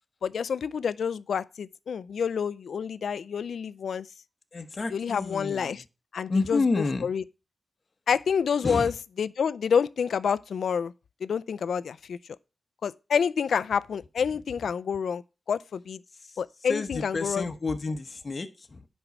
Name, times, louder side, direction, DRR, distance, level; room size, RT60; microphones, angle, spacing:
voice 1, 0.2-4.1 4.9-5.8 6.1-6.6 7.0-7.2 8.1-8.9 9.2-10.9 11.2-12.2 12.8-15.2 15.5-16.0 16.4-17.4, left 6 dB, 85° left, 0.5 m, -28 dB
voice 2, 4.5-5.8 6.3-7.1 8.6-8.9 16.1-18.9, left 3 dB, 45° left, 1.2 m, -30 dB
10.0 x 5.4 x 5.9 m
wide cardioid pair, 85°, 0 cm